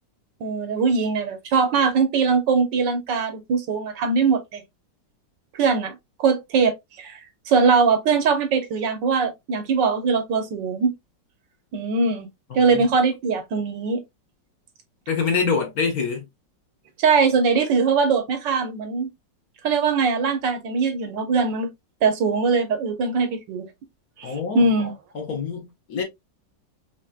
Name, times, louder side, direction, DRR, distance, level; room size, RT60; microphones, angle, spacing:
voice 1, 0.4-4.6 5.5-7.2 7.5-10.9 11.7-12.3 12.5-14.0 17.0-19.1 19.6-21.7 22.0-23.7 24.2-24.9, right 5 dB, 80° right, 1.6 m, -21 dB
voice 2, 12.5-12.9 15.1-16.3 24.2-24.7 25.1-26.0, left 5 dB, 55° left, 1.8 m, -25 dB
5.2 x 3.1 x 2.2 m
omnidirectional pair, 2.0 m